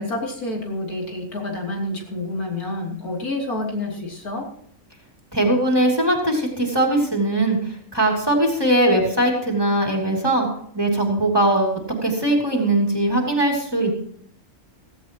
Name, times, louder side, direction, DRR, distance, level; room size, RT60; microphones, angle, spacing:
voice 1, 0.0-4.5, left 2 dB, 80° left, -1 dB, 3.5 m, -28 dB
voice 2, 5.3-10.5 10.7-13.9, right 1 dB, 15° right, 0 dB, 3.0 m, -20 dB
16.5 x 16.0 x 3.0 m, 0.63 s
omnidirectional pair, 1.6 m